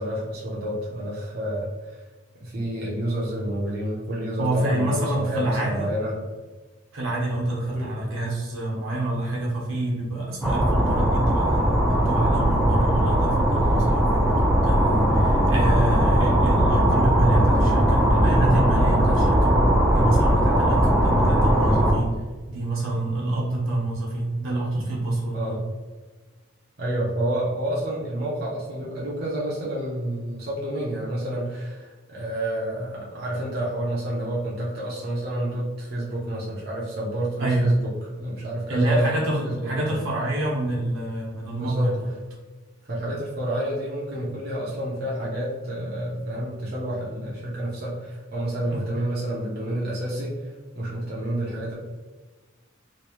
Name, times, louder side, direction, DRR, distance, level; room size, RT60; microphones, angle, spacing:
voice 1, 0.0-2.0 2.4-6.1 7.7-7.9 21.4-21.6 25.3-25.6 26.8-37.7 38.2-39.7 41.6-41.9 42.9-51.7, right 1 dB, 50° right, -6 dB, 0.7 m, -29 dB
voice 2, 4.4-5.8 6.9-22.1 22.5-25.6 37.4-37.7 38.7-42.1 48.7-48.8, right 2 dB, 85° right, -5 dB, 1.2 m, -27 dB
sound 1, 10.4-22.0, equal, ahead, 0.5 m, -19 dB
3.1 x 2.5 x 3.0 m, 1.3 s
head